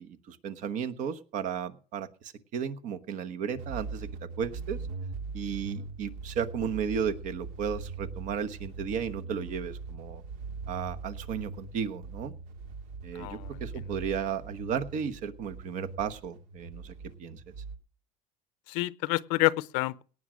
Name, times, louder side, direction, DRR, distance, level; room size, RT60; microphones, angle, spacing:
voice 1, 0.0-4.1 4.4-4.8 5.3-10.2 10.7-12.3 13.0-16.9 17.2-17.4, right 7 dB, 50° right, 1.1 m, -34 dB
sound 1, 3.5-17.8, right 4 dB, 75° right, 2.5 m, -41 dB
voice 2, 13.1-13.6 18.7-20.0, left 20 dB, 85° left, 0.7 m, -28 dB
18.0 x 6.3 x 6.2 m
cardioid pair, 150°, 17 cm